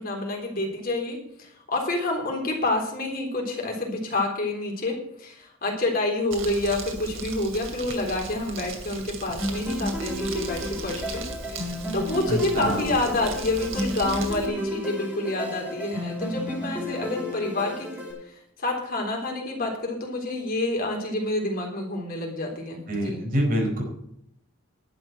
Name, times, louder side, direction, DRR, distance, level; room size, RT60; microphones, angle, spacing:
voice 1, 0.0-11.2 11.5-23.2, left 2 dB, 45° left, 1 dB, 3.7 m, -28 dB
Crumpling crinkling, 6.3-14.5, right 3 dB, 70° right, 2.7 m, -37 dB
sound 1, 9.4-18.1, left 1 dB, 10° right, 5.9 m, -32 dB
voice 2, 12.3-12.9 22.9-23.8, equal, 45° right, 0 dB, 4.9 m, -26 dB
11.5 x 7.9 x 7.7 m, 0.73 s
head